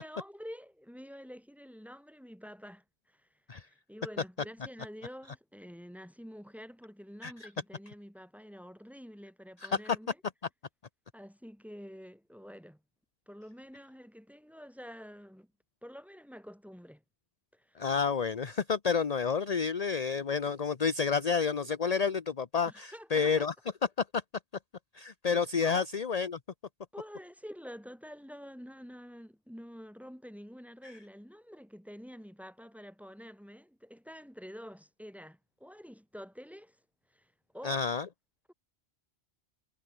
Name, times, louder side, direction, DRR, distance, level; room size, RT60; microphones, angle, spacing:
voice 1, 0.0-3.3 3.7-10.2 11.1-12.8 13.3-15.5 15.8-17.0 17.5-17.9 22.7-23.5 25.6-25.8 26.9-36.8 37.1-37.8, equal, ahead, 3.1 m, -48 dB
voice 2, 17.8-23.5 24.1-24.2 24.9-26.4 37.6-38.1, left 5 dB, 40° left, 0.9 m, -30 dB
omnidirectional pair, 1.1 m